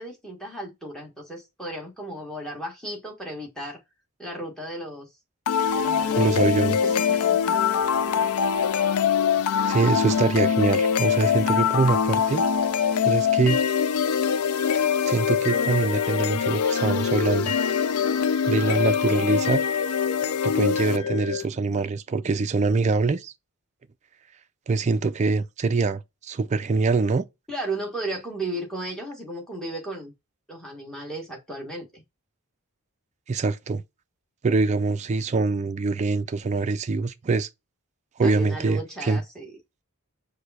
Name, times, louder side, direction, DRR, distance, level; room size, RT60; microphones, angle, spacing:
voice 1, 0.0-3.8 4.2-5.1 5.7-6.5 6.8-7.6 8.1-8.3 27.5-30.1 30.5-32.0 38.2-39.6, right 1 dB, 5° left, 1.4 m, -35 dB
sound 1, 5.5-21.5, left 7 dB, 75° left, 0.4 m, -23 dB
voice 2, 6.1-6.8 9.7-12.5 13.0-13.6 15.1-17.5 18.5-19.6 20.2-23.3 24.7-27.2 33.3-33.8 34.4-37.5 38.2-39.2, right 3 dB, 30° right, 0.3 m, -24 dB
4.8 x 2.2 x 4.1 m
head